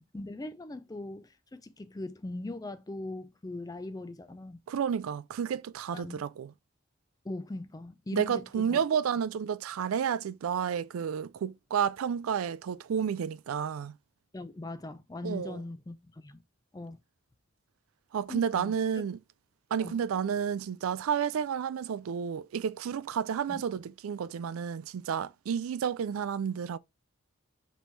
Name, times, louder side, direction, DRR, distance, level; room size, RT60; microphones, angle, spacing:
voice 1, 0.1-4.6 5.9-6.2 7.2-8.8 14.3-16.4 16.7-17.0 18.3-19.0 19.8-20.0 23.5-23.6, left 2 dB, 15° left, 0.3 m, -40 dB
voice 2, 4.7-6.5 8.1-13.9 15.2-15.6 18.1-19.2 19.7-26.8, right 7 dB, 85° right, 0.4 m, -31 dB
5.3 x 3.1 x 3.1 m
head